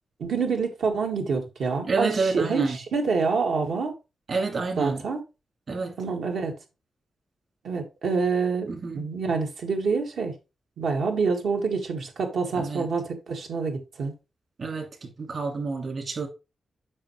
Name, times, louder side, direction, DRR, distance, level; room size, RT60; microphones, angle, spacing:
voice 1, 0.2-3.9 4.8-5.2 6.0-6.5 7.6-8.7 8.9-10.3 10.8-14.1, right 4 dB, 80° right, 1.9 m, -27 dB
voice 2, 1.9-2.8 4.3-5.0 5.7-5.9 8.7-9.1 12.6-12.9 14.6-16.3, right 4 dB, 55° right, 2.7 m, -29 dB
7.5 x 6.0 x 3.2 m
cardioid pair, 70°, 0 cm